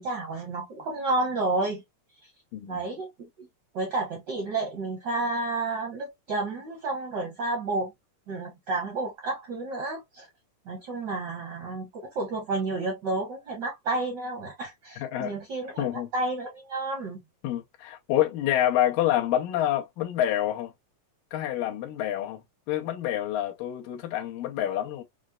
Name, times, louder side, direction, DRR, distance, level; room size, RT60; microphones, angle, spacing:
voice 1, 0.0-1.8 2.7-3.3 3.7-7.9 8.3-10.3 10.7-17.2, right 2 dB, 60° right, 1.1 m, -31 dB
voice 2, 15.0-15.3 15.8-16.1 17.4-20.7 21.3-22.4 22.7-25.0, left 12 dB, 85° left, 2.6 m, -27 dB
6.1 x 2.1 x 2.4 m
omnidirectional pair, 3.8 m